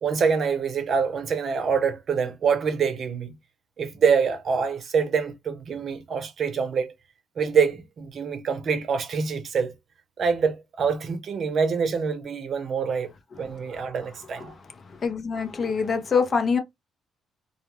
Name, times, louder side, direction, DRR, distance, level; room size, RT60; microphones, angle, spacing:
voice 1, 0.0-3.3 3.8-6.9 7.4-9.7 10.2-13.1 13.4-14.6, right 6 dB, 55° right, 0.7 m, -25 dB
voice 2, 15.0-16.6, left 5 dB, 45° left, 0.8 m, -24 dB
2.4 x 2.3 x 3.0 m
cardioid pair, 90°, 0 cm